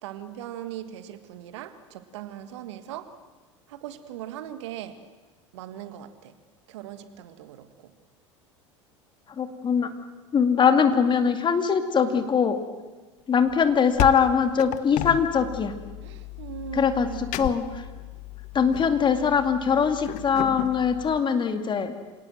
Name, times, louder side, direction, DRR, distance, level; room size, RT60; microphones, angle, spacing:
voice 1, 0.0-3.1 3.7-5.0 5.5-6.3 6.7-7.9 16.0-17.3, right 11 dB, 65° right, 11 dB, 1.8 m, -39 dB
voice 2, 9.4-9.9 10.3-12.6 13.3-15.7 16.7-17.1 17.4-17.8 18.5-21.9, left 6 dB, 30° left, 8 dB, 2.2 m, -22 dB
sound 1, 13.5-21.2, left 15 dB, 50° left, 1.0 m, -35 dB
26.5 x 18.5 x 7.8 m, 1.3 s
figure-of-eight pair, 75°, 16 cm